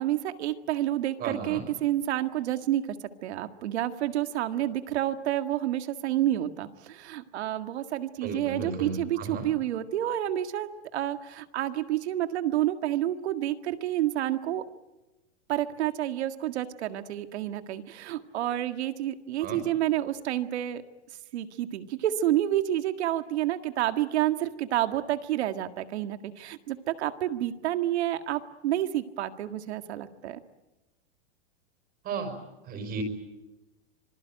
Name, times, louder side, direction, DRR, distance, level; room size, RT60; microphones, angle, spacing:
voice 1, 0.0-2.9 3.2-14.7 15.5-20.8 21.3-30.4, right 13 dB, 70° right, 9 dB, 1.9 m, -29 dB
voice 2, 1.2-1.7 8.2-9.5 19.4-19.6 32.0-32.4 32.7-33.0, right 4 dB, 30° right, 4 dB, 5.2 m, -34 dB
26.0 x 21.0 x 9.1 m, 1.0 s
supercardioid pair, 160°, 34 cm